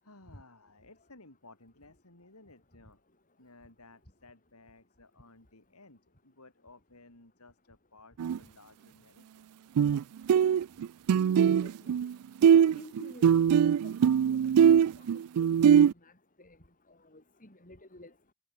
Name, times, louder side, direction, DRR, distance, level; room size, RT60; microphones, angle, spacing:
voice 1, 0.0-3.0 3.4-9.5, left 2 dB, 80° left, 5.7 m, -57 dB
sound 1, 8.2-8.4 9.8-10.0 10.3-12.1 12.4-15.9, right 8 dB, 80° right, 0.3 m, -22 dB
voice 2, 11.6-11.9 12.5-13.3 13.6-13.9 14.2-15.5 16.0-16.1 16.4-16.6 16.9-18.1, left 1 dB, 40° left, 6.8 m, -52 dB
head